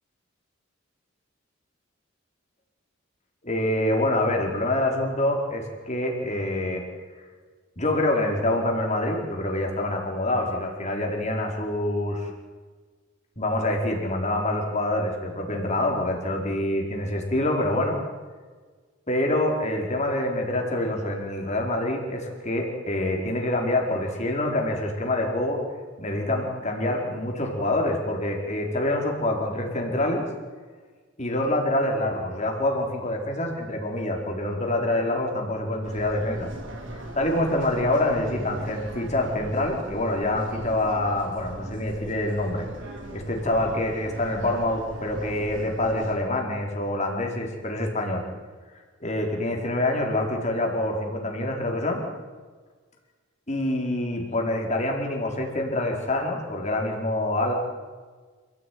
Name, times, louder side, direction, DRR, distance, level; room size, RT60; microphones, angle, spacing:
voice 1, 3.4-6.8 7.8-12.3 13.4-18.0 19.1-25.6 26.0-30.3 31.2-36.5 37.1-42.7 43.1-48.2 49.0-52.0 53.5-57.5, left 1 dB, 35° left, 1 dB, 4.7 m, -26 dB
sound 1, 35.8-46.2, right 1 dB, 65° right, 3.9 m, -39 dB
28.0 x 16.0 x 9.5 m, 1.5 s
head